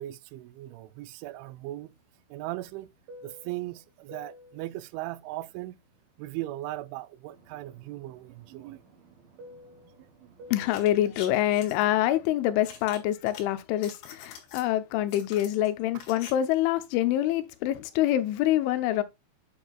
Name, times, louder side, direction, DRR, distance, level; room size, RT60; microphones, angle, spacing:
voice 1, 0.0-1.9 2.3-2.9 3.2-5.8 6.2-8.8 10.0-10.3 14.6-14.7, right 16 dB, 85° right, 2.9 m, -38 dB
Fixed-wing aircraft airplane, 1.5-6.8 7.2-13.0, equal, 55° right, 3.3 m, -53 dB
voice 2, 10.5-19.0, left 13 dB, 90° left, 3.1 m, -26 dB
sound 1, 10.7-11.8 12.6-13.4 13.7-14.7 15.1-16.3 16.6-16.7, left 7 dB, 65° left, 3.7 m, -45 dB
9.0 x 7.0 x 2.3 m
omnidirectional pair, 5.4 m